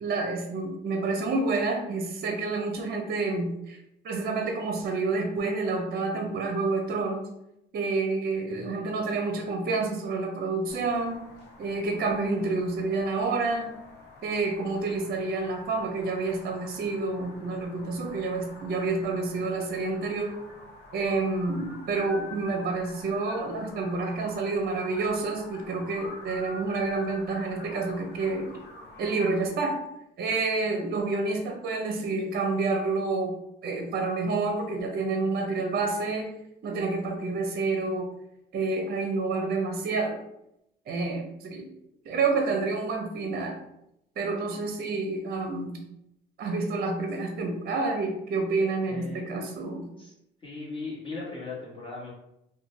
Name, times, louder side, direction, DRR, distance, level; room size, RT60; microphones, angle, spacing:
voice 1, 0.0-3.8 4.0-7.3 7.7-11.2 11.6-13.7 14.2-20.4 20.9-28.6 29.0-29.8 30.2-33.3 33.6-36.3 36.6-38.1 38.5-40.2 40.9-41.7 42.0-43.6 44.2-45.8 46.4-49.9, right 3 dB, 50° right, 3 dB, 0.5 m, -29 dB
sound 1, 10.7-29.5, left 2 dB, 60° left, 0.8 m, -47 dB
voice 2, 48.6-49.2 50.0-50.1 50.4-52.1, left 3 dB, 25° left, -6 dB, 1.3 m, -38 dB
2.5 x 2.2 x 3.1 m, 0.82 s
cardioid pair, 90°, 20 cm